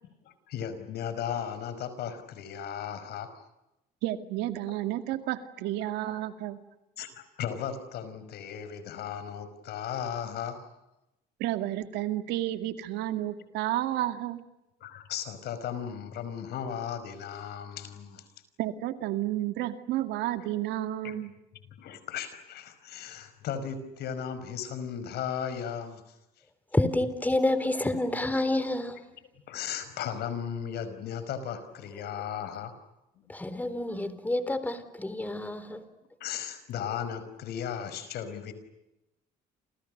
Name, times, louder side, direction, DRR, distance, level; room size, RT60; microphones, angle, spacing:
voice 1, 0.2-3.4 6.0-6.2 7.0-10.6 14.8-18.3 20.4-20.5 21.0-21.1 21.8-26.0 28.4-28.5 29.5-32.8 33.2-33.3 35.2-35.3 36.2-38.5, left 8 dB, 75° left, 12 dB, 5.4 m, -36 dB
voice 2, 4.0-6.6 11.4-14.4 18.6-21.3, right 14 dB, 90° right, 9 dB, 2.2 m, -31 dB
voice 3, 26.7-29.0 33.3-35.8, left 1 dB, 10° left, 12 dB, 3.7 m, -28 dB
29.0 x 29.0 x 6.6 m, 0.90 s
cardioid pair, 110°, 17 cm